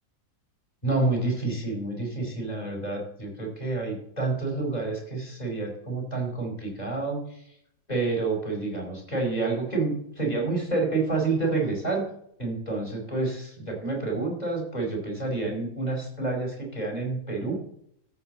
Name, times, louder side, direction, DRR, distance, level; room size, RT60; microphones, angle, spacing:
voice 1, 0.8-7.4 7.9-12.0 12.4-17.5, right 3 dB, 25° left, 0 dB, 4.8 m, -28 dB
13.5 x 5.8 x 7.7 m, 0.70 s
omnidirectional pair, 1.7 m